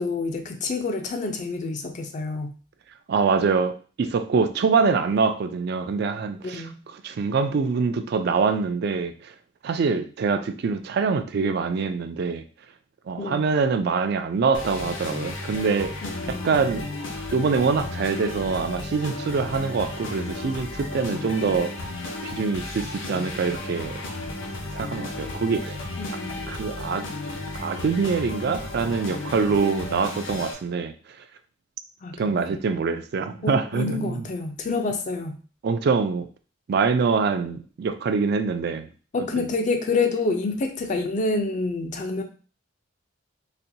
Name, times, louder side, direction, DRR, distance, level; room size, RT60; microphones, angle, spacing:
voice 1, 0.0-2.6 6.4-6.8 13.2-13.5 16.0-16.7 26.0-26.5 32.0-32.6 33.4-35.4 39.1-42.2, left 3 dB, 40° left, 6 dB, 0.4 m, -28 dB
voice 2, 3.1-6.6 7.0-9.3 9.6-12.4 13.1-15.9 16.3-16.9 17.3-21.9 22.2-24.0 24.7-25.8 26.5-27.1 27.5-30.9 32.2-34.3 35.6-36.3 36.7-38.9 39.2-39.5, right 5 dB, 55° right, 10 dB, 0.3 m, -24 dB
sound 1, 14.5-30.5, left 2 dB, 80° left, 0.8 m, -34 dB
4.1 x 2.2 x 2.7 m, 0.38 s
head